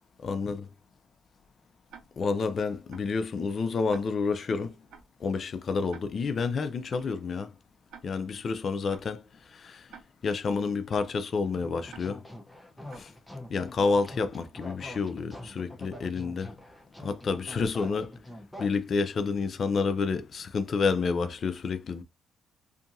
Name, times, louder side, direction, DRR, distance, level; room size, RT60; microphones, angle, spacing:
voice 1, 0.2-0.7 2.2-4.8 5.2-7.5 8.0-9.2 9.5-9.9 10.2-12.2 13.0-13.1 13.5-16.5 17.0-18.2 18.6-22.0, left 4 dB, 50° left, 0.4 m, -29 dB
Tick-tock, 1.9-2.0 2.9-3.0 3.9-4.0 4.9-5.0 5.9-6.0 6.9-7.0 7.9-8.0 8.9-9.0 9.9-10.0 10.9-11.0 11.9-12.0 12.9-13.0, right 7 dB, 80° right, 0.5 m, -48 dB
sound 1, 11.5-18.7, left 1 dB, 5° left, 0.7 m, -45 dB
2.7 x 2.5 x 2.6 m
cardioid pair, 90°, 0 cm